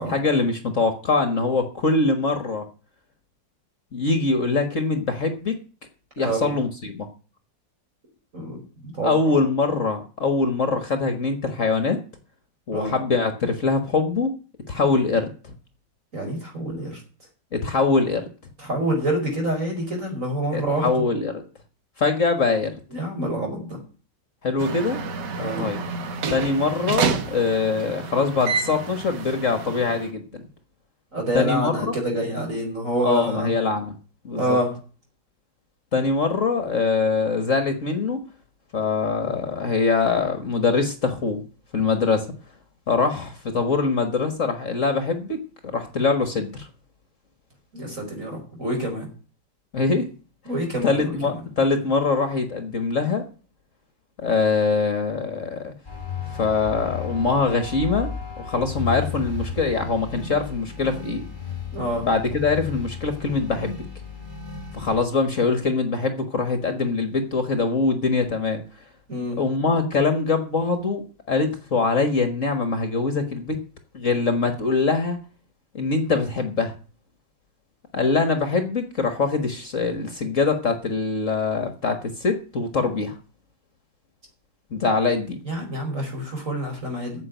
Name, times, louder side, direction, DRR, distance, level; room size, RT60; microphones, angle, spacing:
voice 1, 0.1-2.6 3.9-5.6 6.2-7.1 9.0-12.0 12.7-14.3 14.7-15.5 17.5-18.3 20.5-21.4 22.0-22.7 24.4-25.0 25.6-25.8 26.3-30.4 31.3-31.9 33.0-33.9 34.2-34.6 35.9-38.2 38.7-41.4 41.7-42.3 42.9-46.7 49.7-50.1 50.8-53.2 54.2-55.7 56.3-58.1 58.4-61.2 62.0-63.8 64.7-68.6 69.4-73.6 73.9-75.2 75.7-76.7 77.9-83.2 84.7-85.4, left 4 dB, 45° left, 7 dB, 1.6 m, -23 dB
voice 2, 6.2-6.5 8.3-9.1 12.7-13.0 16.1-17.0 18.6-21.1 22.9-23.8 25.4-25.7 31.1-33.5 34.4-34.8 47.7-49.1 50.5-51.4 61.7-62.1 69.1-69.4 85.4-87.2, right 1 dB, 45° right, 1 dB, 5.2 m, -27 dB
sound 1, 24.6-30.1, right 5 dB, 70° right, 1.8 m, -29 dB
sound 2, 55.8-65.0, left 6 dB, 25° left, 3.8 m, -34 dB
9.5 x 7.6 x 9.1 m, 0.38 s
omnidirectional pair, 2.0 m